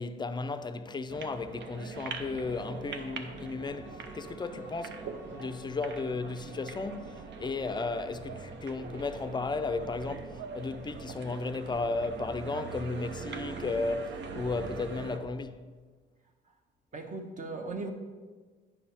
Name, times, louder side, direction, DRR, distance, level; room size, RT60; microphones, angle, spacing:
voice 1, 0.0-15.6, left 3 dB, 20° left, 0.5 m, -34 dB
sound 1, 1.1-15.2, right 5 dB, 65° right, 0.8 m, -42 dB
Bowed string instrument, 3.3-8.1, equal, 15° right, 1.7 m, -56 dB
voice 2, 16.9-17.9, right 3 dB, 40° right, 1.1 m, -37 dB
9.7 x 5.4 x 4.3 m
cardioid pair, 90°, 20 cm